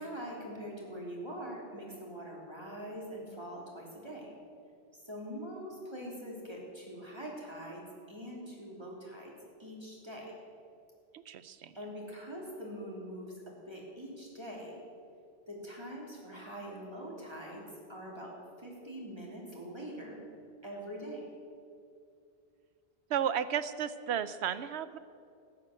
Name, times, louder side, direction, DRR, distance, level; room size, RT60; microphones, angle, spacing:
voice 1, 0.0-4.3 5.0-7.8 8.1-9.3 9.6-10.3 11.7-13.3 13.7-14.8 15.5-17.6 17.9-18.3 18.6-20.2 20.6-21.2, equal, 25° right, -2 dB, 3.1 m, -43 dB
voice 2, 11.1-11.7 23.1-25.0, right 9 dB, 80° right, 14 dB, 0.9 m, -33 dB
13.5 x 9.7 x 7.7 m, 2.4 s
omnidirectional pair, 1.1 m